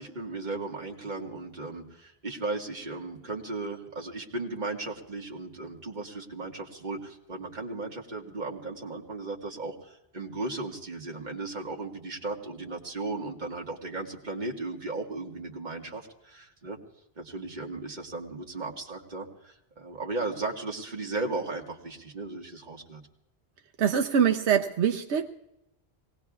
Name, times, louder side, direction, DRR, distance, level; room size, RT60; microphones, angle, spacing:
voice 1, 0.0-16.8 17.2-23.0, right 3 dB, 40° right, 0 dB, 1.8 m, -36 dB
voice 2, 23.8-25.3, right 8 dB, 85° right, 4 dB, 1.0 m, -24 dB
25.5 x 19.0 x 2.4 m, 0.89 s
omnidirectional pair, 1.1 m